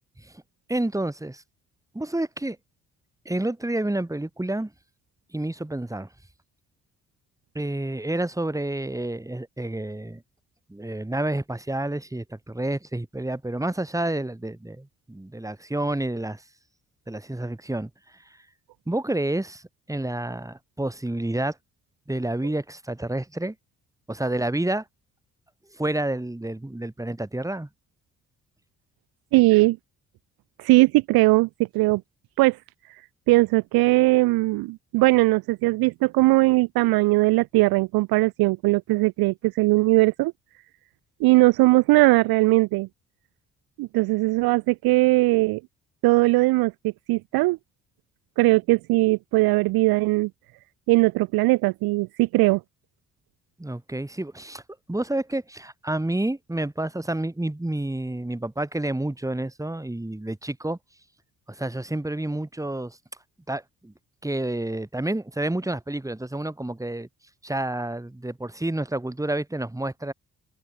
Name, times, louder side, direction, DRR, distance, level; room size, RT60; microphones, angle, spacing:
voice 1, 0.7-1.4 1.9-2.6 3.3-4.7 5.3-6.1 7.5-10.2 10.7-16.4 17.1-18.2 18.9-19.6 19.9-21.6 22.1-23.6 24.1-24.8 25.7-27.7 53.6-54.6 54.9-60.8 61.5-63.0 63.5-63.9 64.2-67.1 67.4-70.1, right 1 dB, 10° right, 2.0 m, -29 dB
voice 2, 29.3-29.8 30.6-31.5 31.7-32.0 32.4-32.6 33.3-40.3 41.2-42.9 43.8-45.6 46.0-47.6 48.4-50.3 50.9-52.6, right 21 dB, 60° right, 0.6 m, -20 dB
figure-of-eight pair, 40°, 40 cm